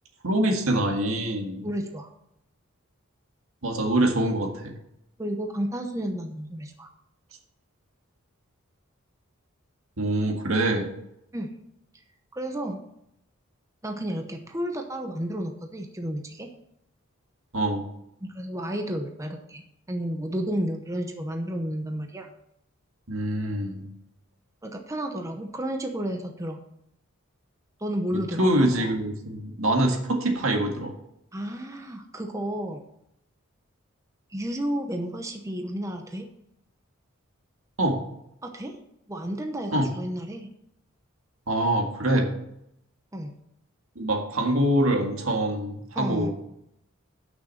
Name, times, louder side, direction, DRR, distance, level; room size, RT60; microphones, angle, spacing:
voice 1, 0.2-1.7 3.6-4.7 10.0-10.9 17.5-17.9 23.1-23.9 28.4-30.9 37.8-38.0 39.7-39.9 41.5-42.3 43.9-46.3, right 1 dB, 80° right, 3 dB, 1.8 m, -24 dB
voice 2, 1.6-2.1 5.2-6.9 11.3-11.5 12.3-12.8 13.8-16.5 18.2-22.3 24.6-26.6 27.8-28.7 31.3-32.8 34.3-36.3 38.4-38.8 39.1-40.5 43.1-43.3 45.9-46.3, equal, 15° right, 4 dB, 0.8 m, -32 dB
9.4 x 6.2 x 5.7 m, 0.77 s
head